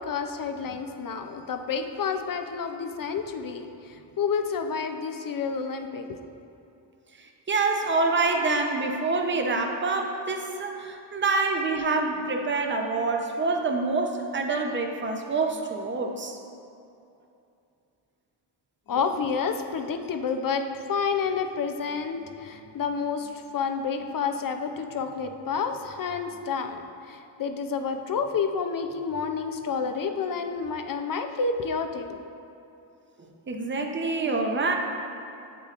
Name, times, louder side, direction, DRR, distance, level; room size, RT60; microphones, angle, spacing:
voice 1, 0.0-6.1 18.9-32.2, left 5 dB, 50° left, 7 dB, 0.6 m, -29 dB
voice 2, 7.2-16.4 33.2-34.8, right 3 dB, 25° right, 3 dB, 0.7 m, -26 dB
7.9 x 6.7 x 2.5 m, 2.7 s
cardioid pair, 65°, 45 cm